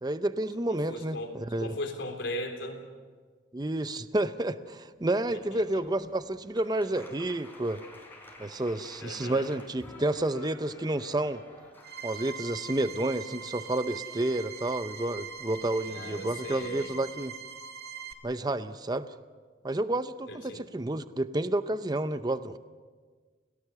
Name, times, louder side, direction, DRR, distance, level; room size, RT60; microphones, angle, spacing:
voice 1, 0.0-1.8 3.5-7.8 8.4-11.4 12.0-17.3 18.2-19.1 19.6-22.6, right 1 dB, 20° right, 12 dB, 0.6 m, -30 dB
voice 2, 0.7-1.3 1.6-2.8 5.3-5.6 9.0-9.5 15.9-16.9 20.3-20.6, left 1 dB, 80° left, 3 dB, 3.5 m, -38 dB
sound 1, 5.2-17.0, left 1 dB, 10° left, 3.8 m, -53 dB
sound 2, 11.8-18.1, right 7 dB, 55° right, 2.0 m, -42 dB
29.5 x 18.0 x 6.9 m, 1.5 s
head